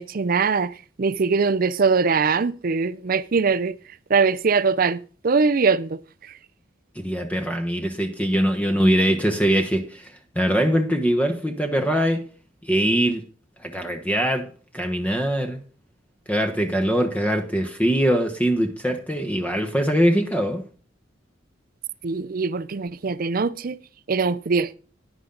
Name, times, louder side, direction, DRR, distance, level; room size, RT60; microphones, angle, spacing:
voice 1, 0.0-3.8 4.1-6.3 22.0-23.8 24.1-24.8, right 4 dB, 50° right, 0.5 m, -22 dB
voice 2, 7.0-10.1 10.3-12.3 12.6-13.2 13.6-14.5 14.7-15.6 16.3-20.6, equal, 10° left, 1.1 m, -22 dB
11.0 x 10.0 x 3.9 m
head